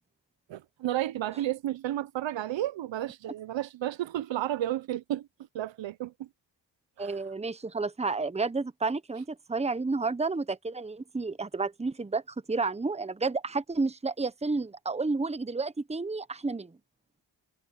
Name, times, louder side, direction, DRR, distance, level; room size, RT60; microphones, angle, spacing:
voice 1, 0.5-5.3 5.5-6.3 7.0-7.2, right 13 dB, 85° right, 0.9 m, -32 dB
voice 2, 7.0-12.2 12.5-16.7, right 3 dB, 15° right, 1.0 m, -31 dB
cardioid pair, 60°, 44 cm